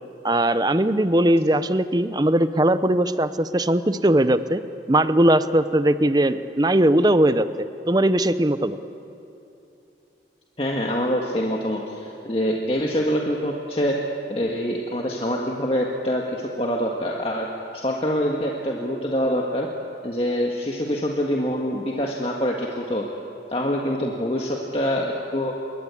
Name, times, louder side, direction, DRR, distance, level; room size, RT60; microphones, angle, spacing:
voice 1, 0.2-4.6 4.9-8.8, right 1 dB, 20° right, 12 dB, 0.7 m, -20 dB
voice 2, 10.6-14.0 14.3-17.5 17.7-19.7 20.0-23.0 23.5-25.5, equal, 30° left, -1 dB, 1.8 m, -25 dB
27.5 x 23.0 x 8.5 m, 2.9 s
head